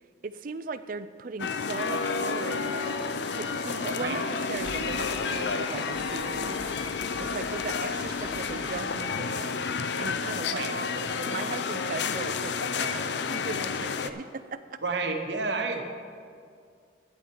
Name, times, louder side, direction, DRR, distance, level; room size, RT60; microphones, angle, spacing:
voice 1, 0.2-2.9 3.3-6.6 7.2-9.6 10.0-10.6 10.9-14.8, right 4 dB, 45° right, 13 dB, 0.4 m, -38 dB
sound 1, 1.4-14.1, left 5 dB, 60° left, 0.5 m, -30 dB
sound 2, 1.7-8.8, right 1 dB, 5° right, 1.3 m, -45 dB
voice 2, 14.8-15.8, right 3 dB, 60° right, 4 dB, 1.1 m, -30 dB
12.5 x 9.7 x 4.5 m, 2.2 s
head